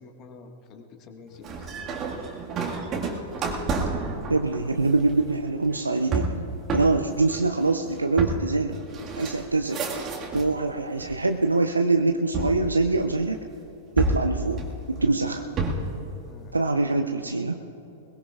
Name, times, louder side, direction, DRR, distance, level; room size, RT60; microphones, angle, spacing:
voice 1, 0.0-2.4 16.2-16.6, left 4 dB, 35° left, 4 dB, 1.6 m, -47 dB
sound 1, 1.4-10.6 11.0-11.6 12.3-13.4 14.0-16.0, right 3 dB, 25° right, 1.8 m, -30 dB
voice 2, 4.3-6.4 6.7-8.8 9.1-9.8 10.3-13.4 14.0-14.6 14.9-15.5 16.5-17.6, right 3 dB, 80° right, 6 dB, 0.6 m, -24 dB
21.5 x 21.5 x 2.4 m, 2.9 s
figure-of-eight pair, 95°, 0 cm